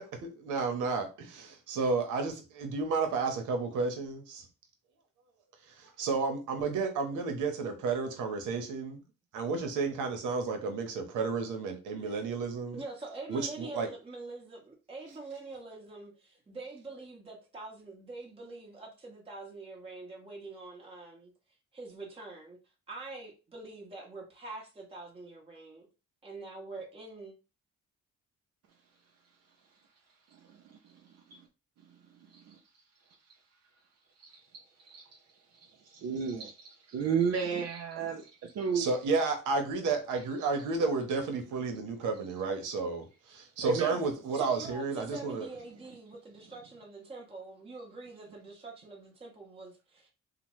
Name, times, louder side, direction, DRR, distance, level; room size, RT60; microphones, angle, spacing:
voice 1, 0.0-4.5 5.7-9.0 9.3-12.8 13.3-13.9 38.7-45.5, right 4 dB, 85° right, 0.8 m, -32 dB
voice 2, 12.7-21.3 21.7-22.6 22.9-25.9 26.2-27.3 44.3-50.1, right 3 dB, 20° right, 0.8 m, -45 dB
voice 3, 35.9-38.9 43.6-44.0, right 6 dB, 60° right, 0.5 m, -32 dB
2.8 x 2.0 x 2.9 m
cardioid pair, 90°, 30 cm